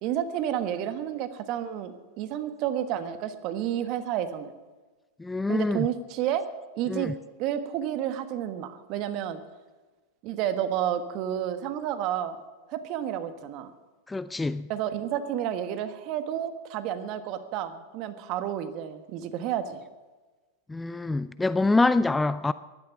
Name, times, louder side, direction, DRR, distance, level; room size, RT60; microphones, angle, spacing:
voice 1, 0.0-4.5 5.5-6.4 6.7-7.1 7.4-9.4 10.2-12.4 12.7-13.7 14.7-19.8, right 10 dB, 50° right, 1.4 m, -30 dB
voice 2, 5.2-5.9 6.9-7.1 14.1-14.7 20.7-22.5, left 3 dB, 10° left, 0.4 m, -25 dB
16.0 x 11.5 x 5.9 m
hypercardioid pair, 100°, 0 cm